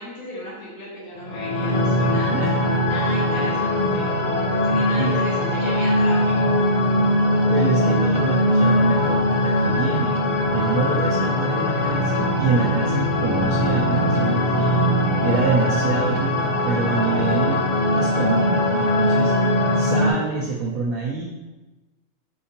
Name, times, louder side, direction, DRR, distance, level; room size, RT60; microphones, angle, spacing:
voice 1, 0.0-2.3 2.8-4.1 4.5-6.4, left 1 dB, 90° left, -7 dB, 1.9 m, -35 dB
sound 1, 1.2-20.1, left 1 dB, 50° left, 0.6 m, -21 dB
voice 2, 2.1-2.6 5.0-5.2 7.5-10.1 10.5-14.8 15.2-17.6 17.9-19.3 19.7-21.3, right 4 dB, 80° right, -5 dB, 1.1 m, -26 dB
4.3 x 3.8 x 2.8 m, 1.1 s
omnidirectional pair, 1.5 m